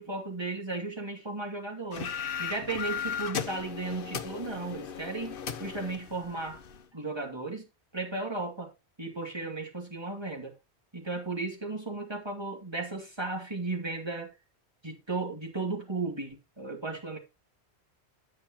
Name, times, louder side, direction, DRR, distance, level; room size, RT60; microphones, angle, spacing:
voice 1, 0.0-6.6 6.9-7.7 7.9-8.7 9.0-10.5 10.9-14.3 14.8-17.2, right 3 dB, 25° right, 2.5 m, -35 dB
sound 1, 1.9-6.8, left 7 dB, 60° left, 1.0 m, -36 dB
9.7 x 8.5 x 3.0 m
omnidirectional pair, 1.1 m